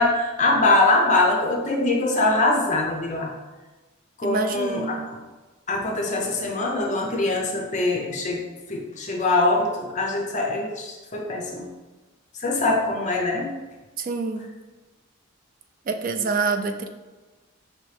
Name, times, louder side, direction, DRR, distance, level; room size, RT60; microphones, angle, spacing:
voice 1, 0.0-3.3 4.2-5.0 5.7-8.4 8.7-11.7 12.4-13.5, left 2 dB, 35° left, 0 dB, 0.6 m, -23 dB
voice 2, 4.2-5.1 14.0-14.5 15.9-16.9, right 4 dB, 40° right, 6 dB, 0.4 m, -26 dB
5.4 x 3.0 x 3.2 m, 1.2 s
head